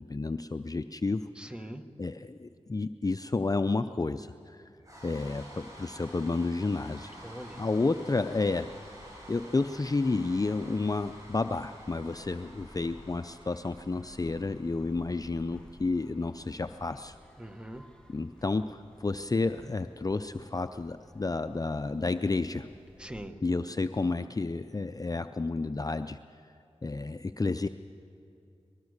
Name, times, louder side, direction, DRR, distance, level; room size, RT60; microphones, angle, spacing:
voice 1, 0.0-1.2 2.0-4.6 5.0-7.1 7.6-8.7 9.3-17.2 18.1-22.7 23.4-26.2 26.8-27.7, left 3 dB, 30° left, 9 dB, 0.5 m, -31 dB
voice 2, 1.3-1.8 7.2-7.6 17.4-17.9 23.0-23.4, right 1 dB, 10° right, 7 dB, 1.3 m, -42 dB
sound 1, 4.8-18.9, equal, 30° right, 7.6 m, -51 dB
sound 2, 8.3-23.3, left 1 dB, 5° left, 1.7 m, -56 dB
24.5 x 20.0 x 6.5 m, 2.6 s
wide cardioid pair, 65°, 12 cm